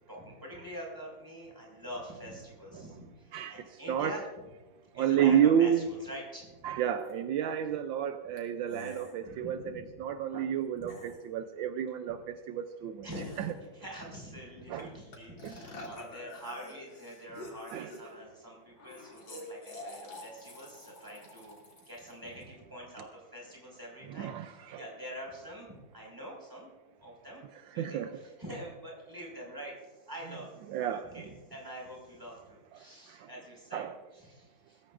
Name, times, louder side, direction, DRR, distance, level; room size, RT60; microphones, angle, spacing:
voice 1, 0.1-4.2 4.9-6.5 9.2-9.9 10.7-10.9 12.1-12.2 13.0-21.6 21.9-24.3 24.7-26.7 27.0-27.4 27.7-30.5 30.9-33.8 34.1-34.8, equal, 10° right, -3 dB, 5.7 m, -45 dB
voice 2, 3.9-4.2 5.0-5.8 6.6-13.1 13.4-13.5 14.7-14.9 15.4-15.5 17.7-17.9 24.2-24.8 27.8-28.1 30.7-31.1 33.1-33.3 33.7-33.9, right 9 dB, 80° right, 9 dB, 1.4 m, -30 dB
sound 1, 7.0-7.1 8.4-8.5 8.7-9.2 10.8-11.2 13.1-13.7 14.8-14.9 15.1-18.2 18.8-22.5, left 1 dB, 70° left, 3.5 m, -47 dB
21.5 x 14.5 x 2.5 m, 1.2 s
omnidirectional pair, 2.1 m